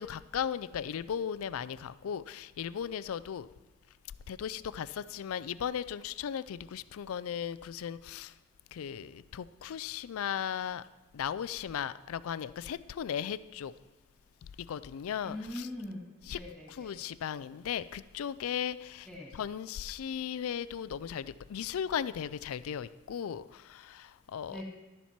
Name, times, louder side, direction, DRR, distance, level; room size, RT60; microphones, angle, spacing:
voice 1, 0.0-3.5 4.3-8.3 8.7-10.8 11.1-13.7 14.6-15.7 16.3-16.4 16.8-19.1 19.4-24.6, left 8 dB, 75° left, 15 dB, 0.3 m, -36 dB
voice 2, 15.2-16.0 16.3-17.0 19.0-19.3 24.5-24.6, left 1 dB, 5° left, -5 dB, 2.3 m, -42 dB
12.0 x 7.1 x 4.4 m, 1.1 s
head